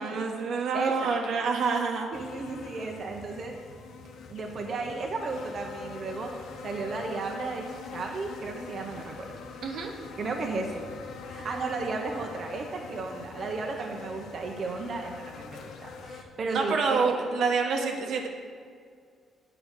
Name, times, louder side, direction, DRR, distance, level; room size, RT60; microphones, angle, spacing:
voice 1, 0.0-2.1 9.6-9.9 16.5-18.3, right 4 dB, 75° right, 1 dB, 1.1 m, -27 dB
voice 2, 0.7-1.1 2.1-3.5 4.3-6.3 6.6-7.6 7.9-9.3 10.2-10.8 11.3-17.0, right 3 dB, 50° right, 1 dB, 0.9 m, -34 dB
sound 1, 2.1-16.2, left 5 dB, 75° left, 0.7 m, -43 dB
8.0 x 4.9 x 6.5 m, 2.1 s
cardioid pair, 90°, 0 cm